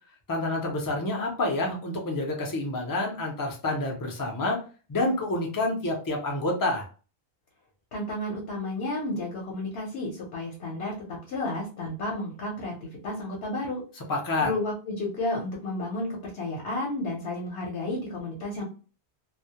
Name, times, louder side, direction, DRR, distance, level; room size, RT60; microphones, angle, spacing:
voice 1, 0.3-4.6 4.9-6.8 14.1-14.5, left 2 dB, 30° left, 0 dB, 0.4 m, -28 dB
voice 2, 7.9-12.7 13.0-13.8 14.4-18.6, left 1 dB, 65° left, -2 dB, 0.9 m, -32 dB
2.2 x 2.0 x 2.8 m, 0.37 s
omnidirectional pair, 1.1 m